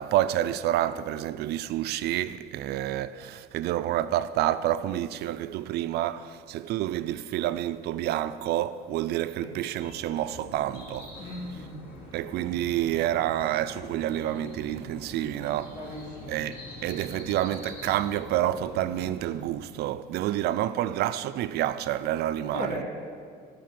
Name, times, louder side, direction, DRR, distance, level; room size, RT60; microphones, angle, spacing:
voice 1, 0.0-11.3 12.1-15.8 16.3-22.8, right 13 dB, 75° right, 0.4 m, -28 dB
sound 1, 9.8-19.5, left 1 dB, 70° left, 2.9 m, -44 dB
voice 2, 11.2-11.8 15.7-16.4 22.5-22.8, left 1 dB, 50° left, 2.8 m, -37 dB
12.0 x 5.1 x 7.5 m
cardioid pair, 110°, 17 cm